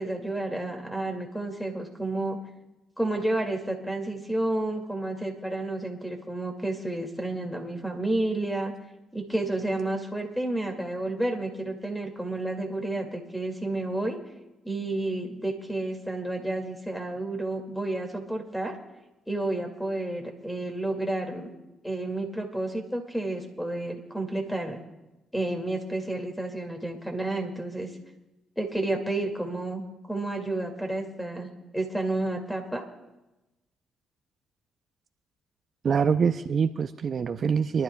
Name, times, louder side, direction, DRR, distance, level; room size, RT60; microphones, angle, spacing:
voice 1, 0.0-2.4 3.0-8.7 9.1-14.2 14.6-18.8 19.3-21.5 21.8-24.8 25.3-27.9 28.6-32.8, right 2 dB, 5° left, 4 dB, 2.2 m, -31 dB
voice 2, 35.8-37.8, right 6 dB, 50° right, 9 dB, 0.5 m, -25 dB
29.0 x 12.0 x 2.3 m, 1.0 s
cardioid pair, 90°, 0 cm